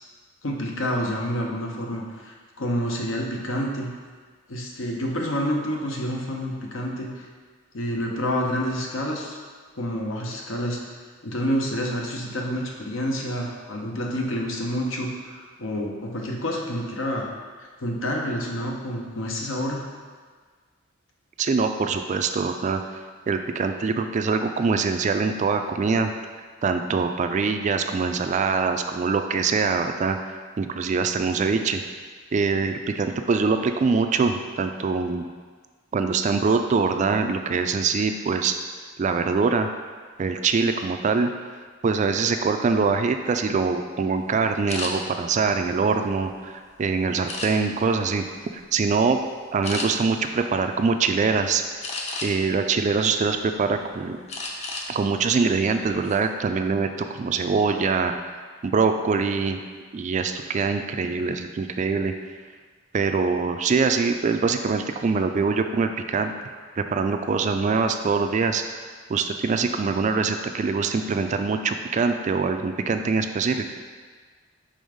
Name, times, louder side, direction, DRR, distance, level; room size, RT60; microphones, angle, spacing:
voice 1, 0.4-3.9 4.5-7.3 7.7-9.4 9.7-10.8 11.2-17.3 17.6-19.9, equal, 75° left, 0 dB, 0.9 m, -28 dB
voice 2, 21.4-22.8 23.3-26.1 26.6-30.2 30.6-31.8 32.3-35.3 35.9-38.5 39.0-39.7 40.2-41.3 41.8-48.2 48.5-49.2 49.5-51.6 52.2-54.2 54.9-58.1 58.6-59.6 59.9-62.1 62.9-66.3 66.8-68.6 69.1-73.7, right 4 dB, 35° right, 7 dB, 0.3 m, -23 dB
sound 1, 44.7-44.9 45.5-46.5 47.3-47.8 48.4-48.6 49.0-49.1 49.6-49.9 51.8-52.5 53.0-53.8 54.3-54.9 55.2-55.4 55.8-56.2, left 3 dB, 35° left, 0.7 m, -33 dB
5.4 x 3.4 x 5.0 m, 1.5 s
head